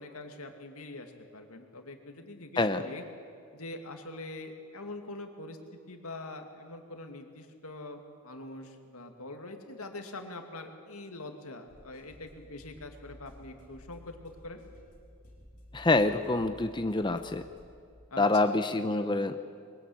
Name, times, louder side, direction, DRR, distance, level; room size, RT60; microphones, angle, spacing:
voice 1, 0.0-3.0 3.5-14.6 18.1-18.6, left 2 dB, 80° left, 5 dB, 2.4 m, -44 dB
sound 1, 11.7-17.7, equal, 40° left, 4.8 m, -54 dB
voice 2, 15.7-17.4 18.2-19.3, left 2 dB, 20° left, 8 dB, 0.6 m, -26 dB
22.5 x 20.5 x 8.7 m, 2.4 s
head